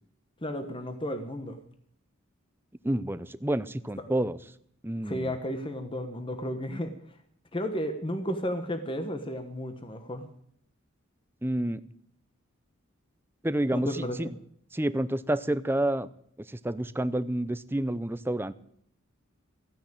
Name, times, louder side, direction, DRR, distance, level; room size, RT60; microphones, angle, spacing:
voice 1, 0.4-1.6 5.0-6.9 7.5-10.3 13.7-14.2, equal, 25° left, 7 dB, 1.2 m, -33 dB
voice 2, 2.8-4.4 4.8-5.3 11.4-11.8 13.4-14.3 14.7-16.1 16.5-18.5, right 1 dB, 10° right, 14 dB, 0.5 m, -29 dB
15.0 x 10.0 x 8.7 m, 0.67 s
head